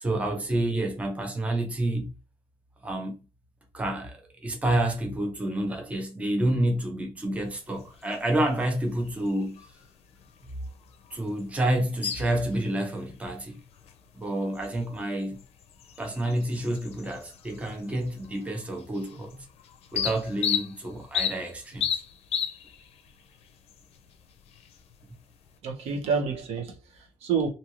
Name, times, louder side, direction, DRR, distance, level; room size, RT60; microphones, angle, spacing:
voice 1, 0.0-2.1 2.8-3.2 3.7-9.6 11.1-13.6 14.2-15.4 16.0-19.4 19.9-21.9, right 1 dB, 15° right, 0.6 m, -29 dB
sound 1, 7.4-25.6, left 8 dB, 75° left, 0.5 m, -37 dB
voice 2, 25.6-27.5, right 5 dB, 85° right, 0.8 m, -29 dB
2.7 x 2.5 x 2.9 m
cardioid pair, 160°, 10 cm